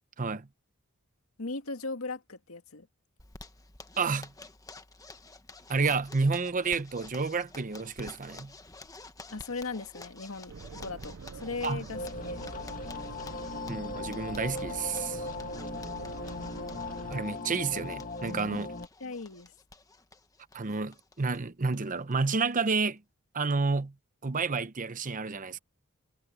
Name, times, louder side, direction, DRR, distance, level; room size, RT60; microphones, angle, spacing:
voice 1, 1.4-2.9 9.3-12.5 18.5-18.6 19.0-19.5, left 3 dB, 80° left, 2.0 m, -38 dB
Zipper (clothing), 3.2-21.4 21.7-21.8 22.1-22.2 22.5-23.0, left 3 dB, 15° left, 1.2 m, -51 dB
voice 2, 4.0-4.3 5.7-8.5 11.6-11.8 13.7-15.3 17.1-18.7 20.5-23.0 23.3-23.9 24.2-25.6, right 4 dB, 40° right, 0.8 m, -30 dB
sound 1, 10.5-17.2, right 4 dB, 65° right, 0.5 m, -45 dB
sound 2, 11.9-18.9, left 3 dB, 40° left, 1.9 m, -38 dB
head